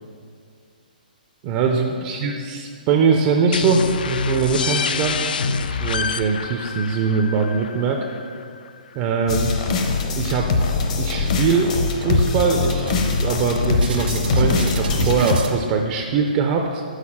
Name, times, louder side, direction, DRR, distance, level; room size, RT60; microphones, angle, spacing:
voice 1, 1.4-8.0 8.9-9.5 10.2-10.5 10.9-16.8, right 5 dB, 25° right, 2 dB, 0.4 m, -22 dB
sound 1, 3.5-9.0, left 5 dB, 70° left, 0.4 m, -27 dB
sound 2, 9.3-15.4, left 4 dB, 45° left, 0.7 m, -22 dB
sound 3, 10.2-11.0 11.3-11.5 11.8-15.5, right 3 dB, 75° right, 1.2 m, -30 dB
6.4 x 5.3 x 5.8 m, 2.2 s
hypercardioid pair, 160°, 5 cm